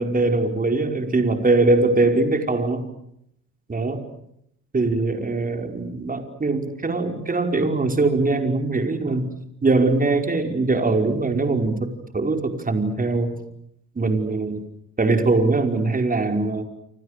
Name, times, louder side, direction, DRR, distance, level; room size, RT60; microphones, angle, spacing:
voice 1, 0.0-2.9 3.7-4.1 4.7-13.4 13.9-14.6 15.0-16.6, right 3 dB, 30° right, 5 dB, 5.1 m, -22 dB
29.0 x 26.5 x 6.7 m, 0.73 s
cardioid pair, 90°, 30 cm